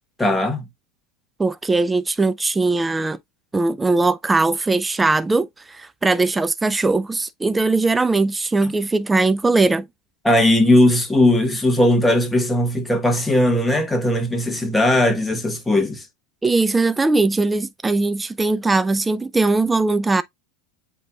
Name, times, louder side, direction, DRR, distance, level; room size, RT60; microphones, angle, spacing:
voice 1, 0.2-0.6 10.2-16.0, left 1 dB, 10° left, 1.3 m, -18 dB
voice 2, 1.4-3.2 3.5-9.9 16.4-20.2, right 3 dB, 15° right, 0.3 m, -20 dB
8.0 x 2.9 x 2.3 m
hypercardioid pair, 105°, 0 cm